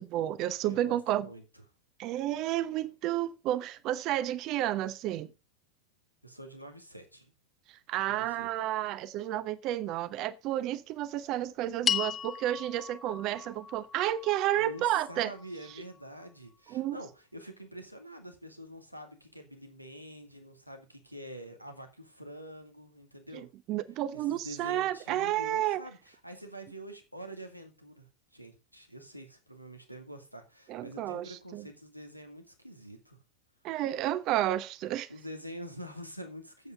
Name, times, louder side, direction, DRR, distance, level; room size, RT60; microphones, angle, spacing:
voice 1, 0.0-1.3 2.0-5.3 7.9-15.3 16.7-17.0 23.3-25.8 30.7-31.7 33.6-35.1, right 13 dB, 40° right, 0.9 m, -31 dB
voice 2, 0.6-1.6 6.2-7.3 8.1-8.5 12.2-12.3 14.5-23.5 24.1-33.2 35.1-36.7, equal, 90° right, 2.0 m, -46 dB
sound 1, 11.9-16.3, left 8 dB, 20° left, 0.9 m, -37 dB
9.3 x 8.0 x 5.2 m
figure-of-eight pair, 90°, 0 cm